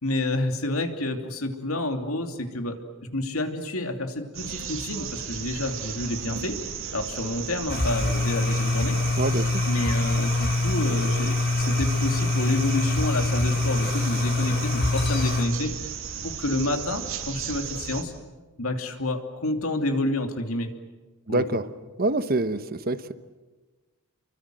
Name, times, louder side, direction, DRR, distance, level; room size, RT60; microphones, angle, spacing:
voice 1, 0.0-2.8 3.1-6.6 6.9-9.0 9.7-15.7 16.2-18.1 18.6-20.7 21.3-21.4, left 1 dB, 70° left, 6 dB, 2.9 m, -29 dB
sound 1, 4.3-18.0, right 7 dB, 65° right, 2.9 m, -35 dB
sound 2, 7.7-15.5, left 2 dB, 50° left, 4.9 m, -25 dB
voice 2, 9.2-9.6 21.3-21.7 22.0-23.1, right 2 dB, 45° right, 12 dB, 1.1 m, -26 dB
29.5 x 24.0 x 7.8 m, 1.2 s
head